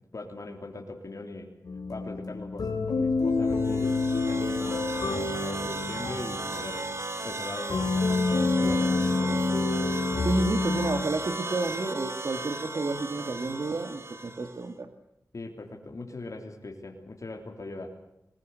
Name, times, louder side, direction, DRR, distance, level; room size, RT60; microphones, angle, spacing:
voice 1, 0.1-1.5 1.9-6.8 7.2-9.4 15.3-17.9, left 2 dB, 55° left, 2 dB, 3.3 m, -40 dB
sound 1, 1.6-11.0, left 3 dB, 85° left, 3.6 m, -28 dB
sound 2, 3.4-14.7, right 2 dB, 45° right, 2.2 m, -36 dB
voice 2, 10.2-14.9, right 3 dB, 60° right, 7 dB, 1.9 m, -31 dB
22.5 x 21.0 x 8.0 m, 0.84 s
cardioid pair, 60°, 6 cm